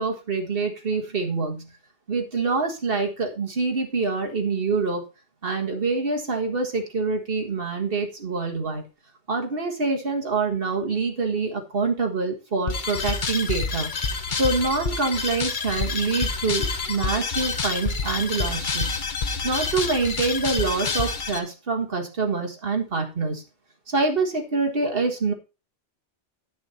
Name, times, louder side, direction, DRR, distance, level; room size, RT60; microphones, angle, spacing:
voice 1, 0.0-1.7 2.1-5.0 5.4-8.8 9.3-13.9 14.4-19.0 19.4-23.4 23.9-25.3, right 4 dB, 55° right, 3 dB, 1.9 m, -26 dB
sound 1, 12.7-21.4, left 4 dB, 45° left, 1.0 m, -28 dB
10.0 x 6.3 x 4.3 m, 0.30 s
omnidirectional pair, 1.2 m